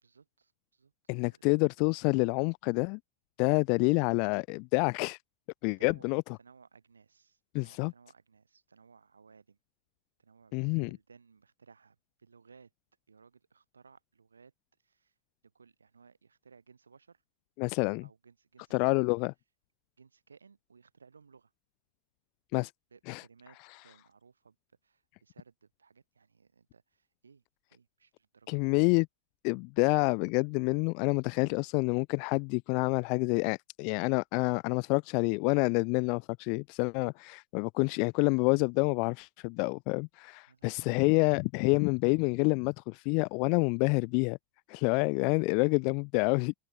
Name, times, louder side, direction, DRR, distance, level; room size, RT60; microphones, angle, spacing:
voice 1, 0.0-0.9 1.2-1.5 5.8-9.6 10.2-10.6 10.9-12.7 13.1-14.5 14.8-15.1 15.4-17.2 18.0-19.1 20.0-21.5 22.9-24.6 24.8-28.6 40.5-41.0, right 5 dB, 75° right, 5.0 m, -60 dB
voice 2, 1.1-3.0 3.4-5.2 5.6-6.2 7.5-7.9 10.5-10.9 17.6-18.0 18.7-19.3 22.5-22.7 23.1-23.2 28.5-29.1 29.4-44.4 44.7-46.5, left 36 dB, 45° left, 0.3 m, -28 dB
figure-of-eight pair, 90°, 0 cm